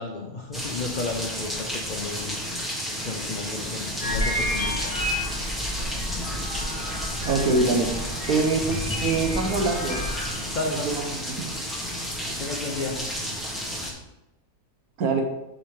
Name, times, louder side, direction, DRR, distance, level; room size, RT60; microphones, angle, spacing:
voice 1, 0.0-2.4 2.7-5.0 10.5-10.9 12.3-13.1, left 3 dB, 55° left, 1 dB, 0.5 m, -33 dB
sound 1, 0.5-13.9, equal, ahead, 1.1 m, -32 dB
sound 2, 4.0-10.3, left 1 dB, 25° left, 0.9 m, -31 dB
voice 2, 7.2-10.1 10.7-11.5 15.0-15.2, right 3 dB, 65° right, 3 dB, 1.4 m, -25 dB
6.9 x 5.5 x 3.8 m, 0.93 s
omnidirectional pair, 1.8 m